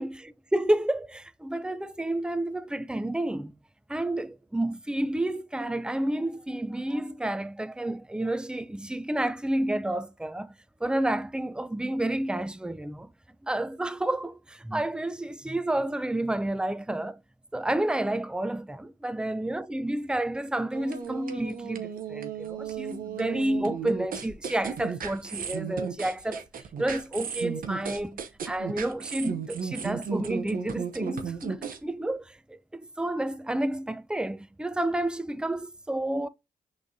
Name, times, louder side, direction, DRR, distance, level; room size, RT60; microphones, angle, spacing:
voice 1, 0.0-3.5 3.9-10.5 10.8-13.1 13.4-17.2 17.5-26.4 26.8-32.6 33.0-36.3, right 1 dB, 5° right, 0.5 m, -30 dB
sound 1, 20.7-31.8, right 6 dB, 60° right, 0.7 m, -35 dB
6.0 x 3.2 x 2.6 m
hypercardioid pair, 40°, 16 cm